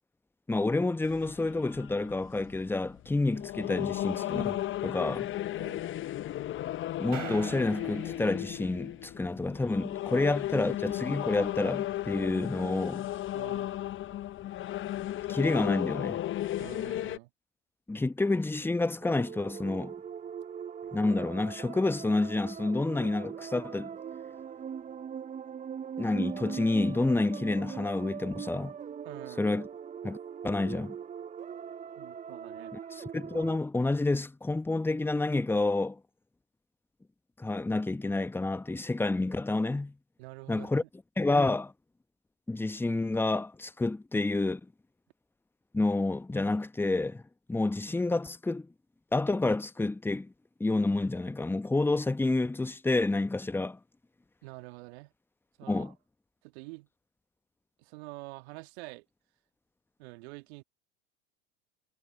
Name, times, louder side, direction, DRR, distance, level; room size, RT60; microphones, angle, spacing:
voice 1, 0.5-5.3 7.0-13.1 15.3-16.2 17.9-19.9 20.9-23.9 26.0-28.7 29.4-29.7 30.0-30.2 30.4-31.0 32.7-36.0 37.4-39.9 40.5-40.8 41.2-41.7 42.5-44.6 45.7-47.2 47.5-48.7 49.1-50.3 50.6-53.8 55.7-55.9, left 2 dB, 5° left, 1.0 m, -29 dB
sound 1, 1.0-17.2, left 14 dB, 35° left, 1.0 m, -35 dB
voice 2, 5.6-5.9 13.3-13.7 16.6-17.3 29.0-29.4 32.0-32.7 40.2-40.9 54.4-55.1 55.6-55.9 56.4-56.9 57.8-59.0 60.0-60.6, right 24 dB, 60° right, 2.4 m, -46 dB
sound 2, 7.1-9.1, right 6 dB, 85° right, 5.2 m, -43 dB
sound 3, 19.0-33.6, right 8 dB, 20° right, 0.9 m, -41 dB
hypercardioid pair, 80°, 37 cm